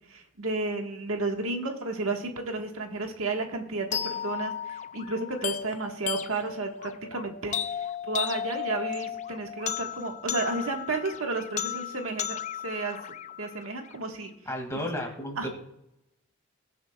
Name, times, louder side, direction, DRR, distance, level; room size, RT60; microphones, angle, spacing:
voice 1, 0.1-12.4 12.6-13.0 13.4-14.3 15.4-15.5, right 3 dB, 80° right, 3 dB, 1.5 m, -32 dB
sound 1, 3.9-13.9, left 9 dB, 35° left, 0.3 m, -35 dB
voice 2, 14.5-15.5, left 1 dB, 15° left, 1 dB, 2.1 m, -33 dB
21.0 x 7.4 x 2.3 m, 0.82 s
head